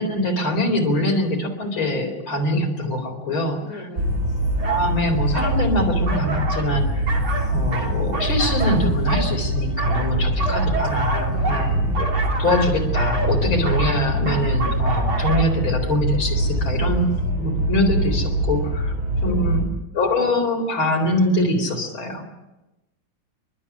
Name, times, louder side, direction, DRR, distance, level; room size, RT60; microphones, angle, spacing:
voice 1, 0.0-3.8 4.6-7.1 7.5-12.1 12.4-17.1 17.4-18.9 19.2-19.6 19.9-22.2, left 1 dB, 90° left, 4 dB, 4.9 m, -23 dB
voice 2, 3.6-4.2 10.1-10.7 11.3-11.7 13.3-13.5 16.8-17.1 19.2-19.7, left 2 dB, 50° left, -1 dB, 3.8 m, -38 dB
sound 1, 4.0-19.6, right 1 dB, 40° right, 3.6 m, -23 dB
sound 2, 4.6-4.9 5.3-5.6 6.1-6.7 7.1-9.3 9.8-15.4, right 2 dB, 80° right, 4.2 m, -29 dB
29.5 x 13.0 x 9.9 m, 0.99 s
omnidirectional pair, 2.2 m